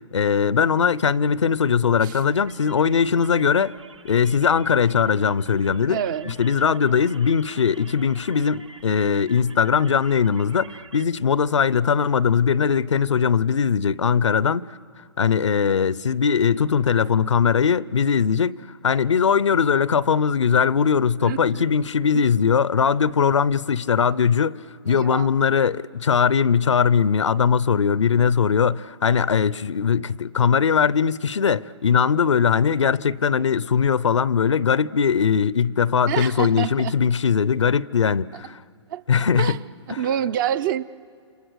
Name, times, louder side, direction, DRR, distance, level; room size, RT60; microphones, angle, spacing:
voice 1, 0.1-3.7 4.0-6.0 6.3-14.8 15.2-18.6 18.8-24.6 24.9-38.6 39.1-39.5 39.9-40.0, left 6 dB, 90° left, 0.6 m, -20 dB
sound 1, 2.3-11.0, right 4 dB, 85° right, 1.4 m, -47 dB
voice 2, 5.9-6.4 21.2-21.7 22.1-22.2 24.9-25.3 36.1-36.9 38.9-39.6 40.0-40.8, right 10 dB, 45° right, 0.7 m, -27 dB
30.0 x 27.0 x 6.3 m
hypercardioid pair, 135°, 15 cm